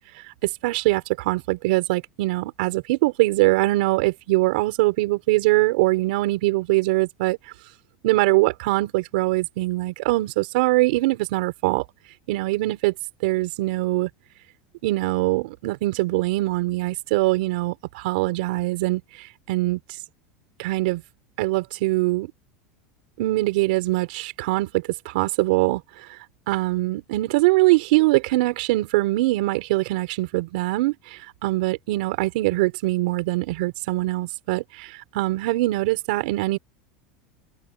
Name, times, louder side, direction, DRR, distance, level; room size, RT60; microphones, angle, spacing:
voice 1, 0.4-7.4 8.0-11.8 12.3-12.9 13.2-14.1 14.8-19.8 20.6-21.0 21.4-22.3 23.2-26.1 26.5-36.6, right 20 dB, 75° right, 5.2 m, -22 dB
supercardioid pair, 140°, 5 cm